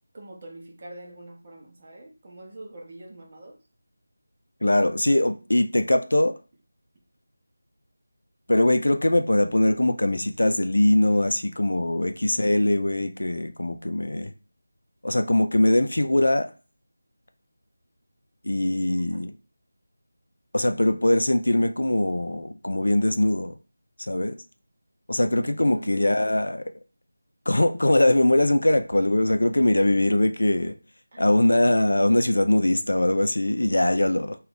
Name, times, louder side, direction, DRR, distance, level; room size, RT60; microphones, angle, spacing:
voice 1, 0.1-3.6 12.0-12.1 12.3-12.4 18.9-19.4 25.6-26.5 31.1-31.2, right 1 dB, 35° right, 0.7 m, -44 dB
voice 2, 4.6-6.3 8.5-14.3 15.0-16.5 18.4-19.3 20.5-23.5 24.1-24.4 25.1-26.6 27.5-30.8 31.2-34.4, left 1 dB, 80° left, 0.4 m, -22 dB
2.5 x 2.3 x 3.3 m
figure-of-eight pair, 170°, 0 cm